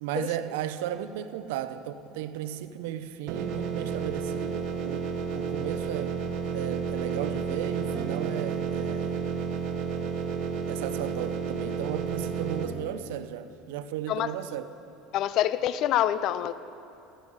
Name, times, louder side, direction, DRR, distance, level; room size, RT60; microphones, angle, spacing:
voice 1, 0.0-6.2 6.5-9.2 10.7-14.7, right 11 dB, 85° right, 0.6 m, -35 dB
sound 1, 3.3-12.6, right 6 dB, 65° right, 1.1 m, -31 dB
voice 2, 15.1-16.5, left 12 dB, 55° left, 0.5 m, -26 dB
15.0 x 12.5 x 4.9 m
supercardioid pair, 105°, 0 cm